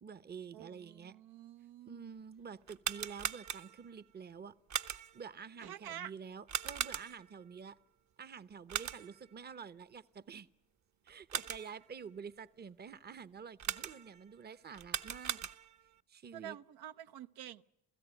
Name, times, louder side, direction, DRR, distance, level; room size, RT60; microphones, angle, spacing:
voice 1, 0.0-1.2 1.9-4.5 5.1-7.8 8.2-10.5 11.0-15.5 16.1-16.6, right 6 dB, 25° right, 0.8 m, -48 dB
voice 2, 0.5-2.1 5.6-6.1 16.3-17.6, right 11 dB, 70° right, 0.8 m, -48 dB
sound 1, 2.6-3.9 4.7-5.3 6.5-7.4 8.7-9.3 11.1-11.8 13.6-14.2 14.7-15.9, right 8 dB, 45° right, 1.2 m, -39 dB
28.5 x 16.0 x 9.0 m
cardioid pair, 95°, 39 cm